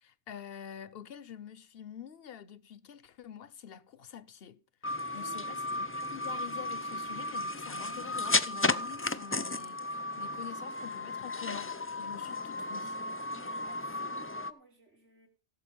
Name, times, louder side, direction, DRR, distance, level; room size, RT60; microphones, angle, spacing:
voice 1, 0.0-11.7 12.0-13.0, left 9 dB, 60° left, 1.0 m, -47 dB
sound 1, 4.8-14.5, left 2 dB, 20° left, 0.3 m, -34 dB
voice 2, 5.1-6.0 13.3-15.3, right 3 dB, 85° right, 3.9 m, -57 dB
16.0 x 7.4 x 5.3 m
omnidirectional pair, 1.2 m